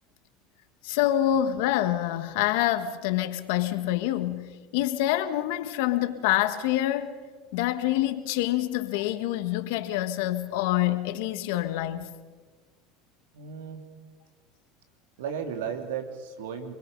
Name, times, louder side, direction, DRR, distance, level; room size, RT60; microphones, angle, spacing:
voice 1, 0.8-7.2 7.5-12.1, left 13 dB, 75° left, 1.7 m, -26 dB
voice 2, 13.3-13.8 15.2-16.7, right 7 dB, 85° right, 2.9 m, -34 dB
28.0 x 22.0 x 5.5 m
supercardioid pair, 95°, 0 cm